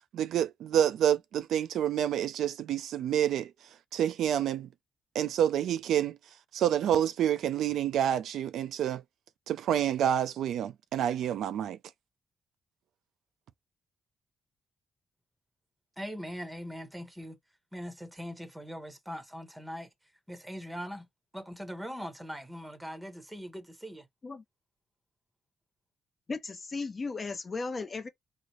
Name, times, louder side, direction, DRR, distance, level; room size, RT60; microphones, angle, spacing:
voice 1, 0.1-3.5 3.9-4.7 5.1-6.2 6.5-9.0 9.5-11.8, right 10 dB, 85° right, 0.4 m, -28 dB
voice 2, 16.0-17.4 17.7-19.9 20.3-21.1 21.3-24.1, equal, 5° right, 0.9 m, -41 dB
voice 3, 26.3-28.1, left 4 dB, 30° left, 0.7 m, -36 dB
4.0 x 2.0 x 3.1 m
cardioid pair, 130°, 0 cm